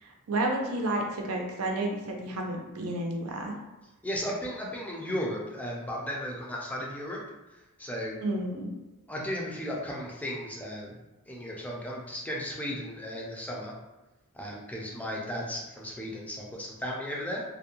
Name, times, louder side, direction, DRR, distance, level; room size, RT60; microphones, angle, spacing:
voice 1, 0.0-3.6 8.2-8.7, right 1 dB, 90° right, 1 dB, 0.5 m, -31 dB
voice 2, 4.0-7.2 7.5-8.2 9.1-10.9 11.3-13.7 14.3-17.4, equal, 5° left, -3 dB, 0.4 m, -35 dB
2.5 x 2.1 x 2.9 m, 1.0 s
head